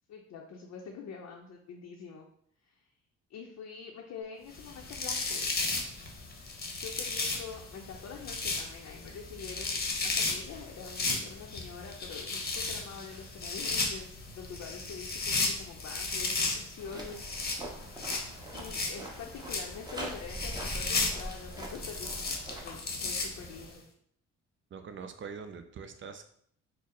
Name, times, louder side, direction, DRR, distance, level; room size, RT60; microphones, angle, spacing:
voice 1, 0.1-2.3 2.6-2.8 3.3-5.7 6.7-17.4 18.5-23.8, left 6 dB, 60° left, 0 dB, 0.6 m, -45 dB
sound 1, 4.5-23.7, left 3 dB, 30° left, 0.8 m, -35 dB
sound 2, 16.8-22.6, right 1 dB, 15° right, 0.9 m, -43 dB
voice 2, 24.7-26.3, right 5 dB, 40° right, 7 dB, 0.5 m, -43 dB
4.1 x 2.0 x 3.7 m, 0.64 s
cardioid pair, 90°, 30 cm